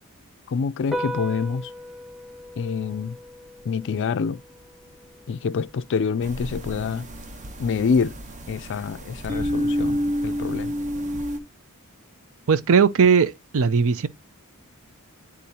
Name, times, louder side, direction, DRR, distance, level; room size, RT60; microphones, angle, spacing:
voice 1, 0.5-1.7 2.6-3.2 3.6-4.4 5.3-7.1 7.6-8.1 8.5-10.8, left 5 dB, 55° left, 0.4 m, -26 dB
Piano, 0.9-8.8, left 1 dB, ahead, 0.8 m, -39 dB
sound 1, 6.2-11.4, equal, 35° right, 0.9 m, -29 dB
voice 2, 12.5-14.1, right 6 dB, 65° right, 0.5 m, -18 dB
10.0 x 3.7 x 2.8 m
head